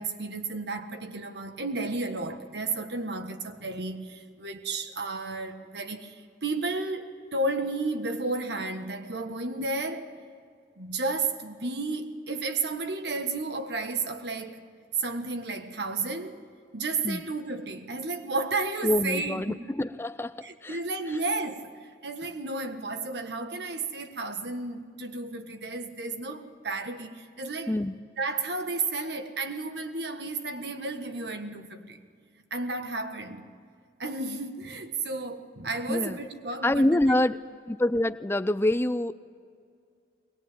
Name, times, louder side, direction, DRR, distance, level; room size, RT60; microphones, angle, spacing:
voice 1, 0.0-10.1 10.8-14.6 15.0-16.4 16.7-19.6 20.4-21.7 22.0-27.8 28.2-32.0 32.5-33.4 34.0-37.0, right 3 dB, 65° right, 1.5 m, -32 dB
voice 2, 18.8-20.8 27.7-27.9 35.9-36.2 36.6-37.4 37.7-39.1, left 1 dB, 15° left, 0.5 m, -26 dB
22.0 x 20.5 x 9.1 m
head